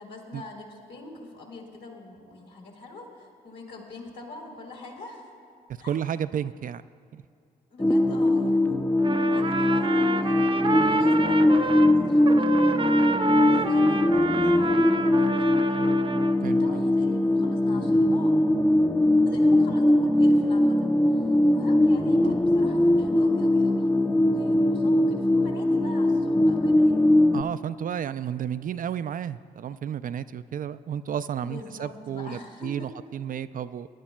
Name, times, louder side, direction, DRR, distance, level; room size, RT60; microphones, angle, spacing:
voice 1, 0.0-5.3 5.8-6.0 7.7-8.8 9.2-13.2 13.4-15.9 16.5-18.4 19.2-27.2 31.4-32.9, left 2 dB, 65° left, -1 dB, 3.1 m, -43 dB
voice 2, 5.8-6.8 7.1-7.2 16.4-16.8 22.2-22.3 27.3-33.9, right 9 dB, 45° right, 14 dB, 0.4 m, -32 dB
sound 1, 7.8-27.4, left 1 dB, 10° left, 0.5 m, -21 dB
Trumpet, 9.0-11.9 12.2-16.4, right 3 dB, 25° right, 0.8 m, -29 dB
22.0 x 11.5 x 2.3 m, 2.5 s
hypercardioid pair, 40°, 19 cm